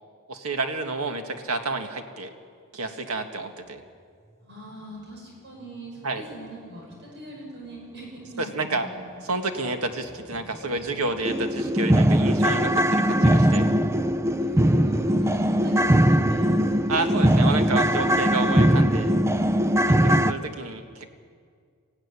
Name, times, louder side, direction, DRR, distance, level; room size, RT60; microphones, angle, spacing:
voice 1, 0.3-2.3 2.7-3.8 6.0-6.2 8.4-8.9 9.2-13.7 16.9-19.2 20.0-21.1, right 3 dB, 80° right, 6 dB, 1.8 m, -30 dB
voice 2, 4.4-9.2 14.3-17.1 18.0-18.2 19.3-20.3, right 1 dB, 55° right, -1 dB, 5.9 m, -41 dB
sound 1, 10.3-10.4 10.8-10.9 11.2-20.3, equal, 15° right, 0.5 m, -20 dB
21.0 x 15.5 x 9.9 m, 2.1 s
head